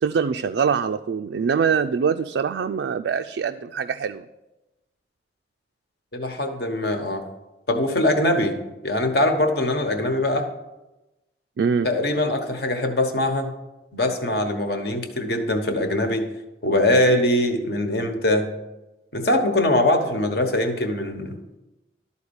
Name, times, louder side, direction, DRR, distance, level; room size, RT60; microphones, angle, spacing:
voice 1, 0.0-4.3 11.6-11.9, right 6 dB, 75° right, 7 dB, 0.3 m, -23 dB
voice 2, 6.1-7.2 7.7-8.6 8.8-10.5 11.8-13.5 13.9-16.2 16.6-18.5 19.1-21.4, left 1 dB, 60° left, 5 dB, 1.2 m, -22 dB
12.5 x 4.3 x 7.0 m, 1.0 s
head